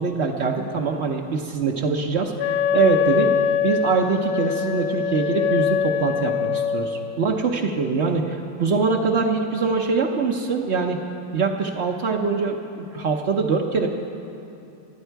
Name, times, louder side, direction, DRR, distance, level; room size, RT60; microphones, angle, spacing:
voice 1, 0.0-3.3 3.6-11.0 11.3-13.9, right 4 dB, 85° right, 1 dB, 0.6 m, -23 dB
Wind instrument woodwind instrument, 2.4-6.9, left 7 dB, 85° left, 1.6 m, -23 dB
25.0 x 8.9 x 4.6 m, 2.7 s
omnidirectional pair, 2.3 m